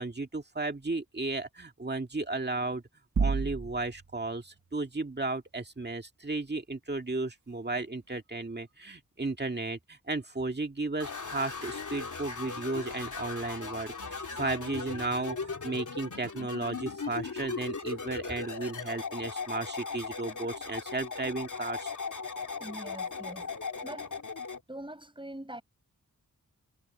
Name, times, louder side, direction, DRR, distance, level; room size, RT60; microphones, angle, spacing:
voice 1, 0.0-2.8 3.2-21.9, right 2 dB, 30° right, 2.0 m, -34 dB
sound 1, 3.2-4.1, right 5 dB, 60° right, 1.5 m, -29 dB
sound 2, 11.0-24.6, left 4 dB, 60° left, 3.2 m, -38 dB
voice 2, 22.6-23.5 23.8-24.2 24.7-25.6, right 1 dB, 15° right, 7.6 m, -43 dB
wide cardioid pair, 75°, 33 cm